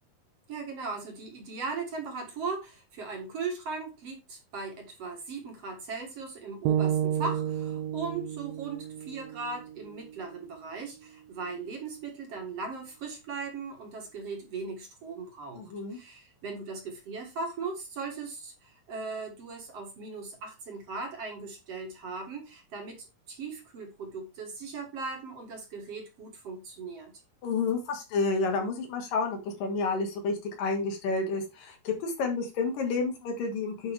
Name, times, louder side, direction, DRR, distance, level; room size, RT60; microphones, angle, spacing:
voice 1, 0.5-27.1, right 4 dB, 50° right, 2 dB, 2.5 m, -38 dB
sound 1, 6.7-10.8, right 10 dB, 85° right, 2.2 m, -32 dB
voice 2, 15.6-16.0 27.4-33.9, left 4 dB, 75° left, 3 dB, 3.6 m, -30 dB
9.8 x 5.5 x 3.5 m, 0.26 s
omnidirectional pair, 3.9 m